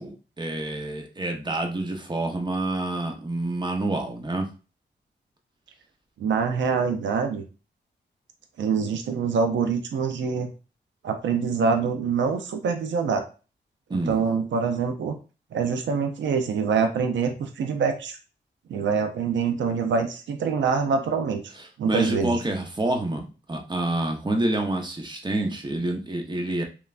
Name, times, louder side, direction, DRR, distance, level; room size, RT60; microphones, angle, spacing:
voice 1, 0.0-4.5 13.9-14.2 21.8-26.6, right 2 dB, 25° right, 3 dB, 0.7 m, -28 dB
voice 2, 6.2-7.4 8.6-10.5 11.0-13.2 13.9-15.1 15.5-18.2 18.7-21.4 21.8-22.4, right 5 dB, 80° right, 6 dB, 0.4 m, -25 dB
3.1 x 2.2 x 2.4 m, 0.34 s
cardioid pair, 65°, 19 cm